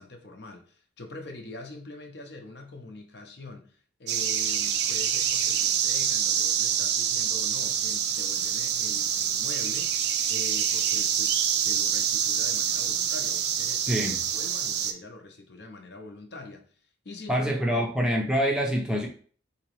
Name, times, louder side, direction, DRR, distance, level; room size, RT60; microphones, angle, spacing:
voice 1, 0.0-16.6 17.0-18.0, left 2 dB, 55° left, 0.7 m, -44 dB
sound 1, 4.1-14.9, right 8 dB, 55° right, 0.4 m, -26 dB
voice 2, 13.9-14.2 17.3-19.1, equal, 5° right, 0.5 m, -25 dB
3.9 x 2.9 x 3.1 m
head